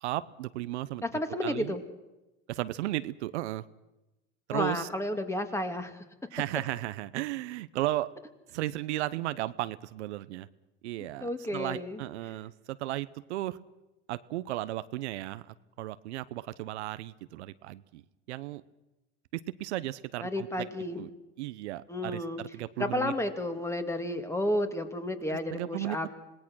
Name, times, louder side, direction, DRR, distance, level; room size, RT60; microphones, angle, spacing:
voice 1, 0.0-1.7 2.5-3.6 4.5-4.9 6.3-8.1 8.5-10.5 10.8-13.6 14.1-18.0 18.3-18.6 19.3-20.7 21.0-21.1 21.4-23.1 25.3-26.1, right 16 dB, 80° right, 15 dB, 0.8 m, -35 dB
voice 2, 1.1-1.8 4.5-6.0 11.2-12.0 20.2-21.1 21.9-22.4 22.8-26.1, left 1 dB, 10° left, 7 dB, 2.4 m, -32 dB
26.5 x 19.0 x 6.2 m, 1.0 s
hypercardioid pair, 100°, 34 cm